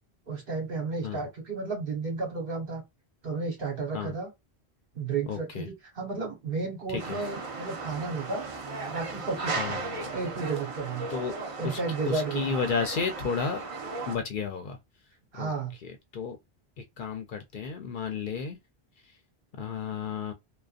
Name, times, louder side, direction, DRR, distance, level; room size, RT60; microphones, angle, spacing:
voice 1, 0.3-2.8 3.2-4.3 4.9-8.5 8.9-9.8 10.1-11.1 11.6-12.5 15.3-15.7, right 4 dB, 60° right, 1.4 m, -32 dB
voice 2, 5.3-5.7 6.9-7.2 9.4-10.1 11.1-11.3 11.6-11.8 12.1-13.6 14.1-14.8 15.4-15.5 15.8-16.4 16.8-18.6 19.6-20.3, left 5 dB, 60° left, 0.6 m, -32 dB
sound 1, 7.0-14.2, right 3 dB, 40° right, 0.5 m, -36 dB
2.5 x 2.2 x 2.4 m
omnidirectional pair, 1.1 m